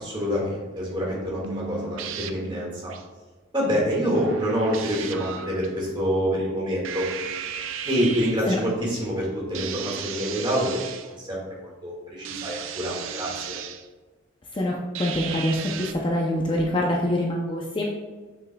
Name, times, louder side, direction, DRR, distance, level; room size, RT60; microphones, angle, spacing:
voice 1, 0.0-2.9 3.5-7.0 7.8-10.7 11.0-13.6, equal, 25° right, -4 dB, 1.8 m, -26 dB
sound 1, 1.4-3.0 4.1-5.7 6.8-8.5 9.5-11.1 12.2-13.9 14.9-15.9, right 7 dB, 80° right, 0.5 m, -35 dB
voice 2, 14.5-17.8, left 1 dB, 25° left, -1 dB, 0.5 m, -25 dB
7.0 x 6.8 x 2.3 m, 1.3 s
head